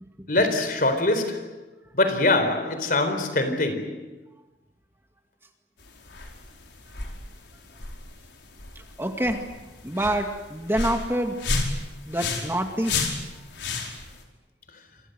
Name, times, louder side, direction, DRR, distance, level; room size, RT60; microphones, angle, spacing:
voice 1, 0.3-1.6 1.9-4.1, left 2 dB, 50° left, 4.2 m, -23 dB
sound 1, 5.8-14.2, left 3 dB, 85° left, 4.9 m, -33 dB
voice 2, 9.0-9.4 9.8-11.4 12.1-13.2, right 1 dB, 15° right, 2.2 m, -26 dB
28.0 x 24.5 x 8.0 m
head